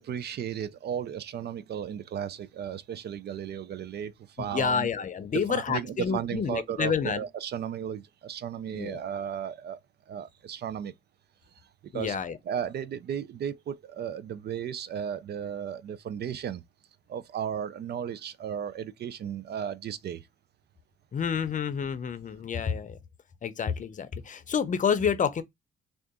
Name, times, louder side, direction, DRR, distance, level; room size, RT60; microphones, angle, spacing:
voice 1, 0.0-4.9 5.3-9.8 10.1-10.9 11.9-12.2 12.5-16.6 17.1-20.2, right 9 dB, 55° right, 0.5 m, -35 dB
voice 2, 4.4-7.2 8.7-9.0 11.9-12.4 21.1-23.0 23.4-25.4, left 7 dB, 40° left, 0.6 m, -29 dB
3.7 x 2.4 x 3.5 m
cardioid pair, 90°, 20 cm